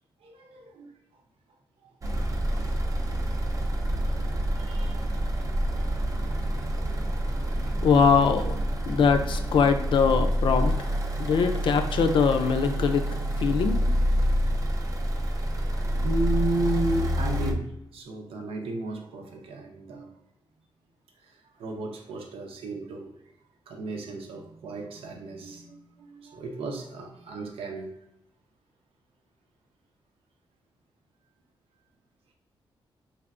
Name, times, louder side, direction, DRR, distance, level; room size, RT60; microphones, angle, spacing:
voice 1, 0.2-0.9 1.8-1.9 2.2-3.2 4.5-5.0 5.8-5.9 14.4-14.5 15.8-20.1 21.3-23.1 23.7-27.9, right 2 dB, 90° right, 2 dB, 0.7 m, -34 dB
sound 1, 2.0-17.5, equal, 40° right, 0.5 m, -27 dB
voice 2, 7.8-8.5 8.9-10.9 11.2-13.1 13.4-13.8, left 6 dB, 60° left, 7 dB, 0.4 m, -22 dB
4.3 x 3.3 x 2.4 m, 0.83 s
wide cardioid pair, 120°, 9 cm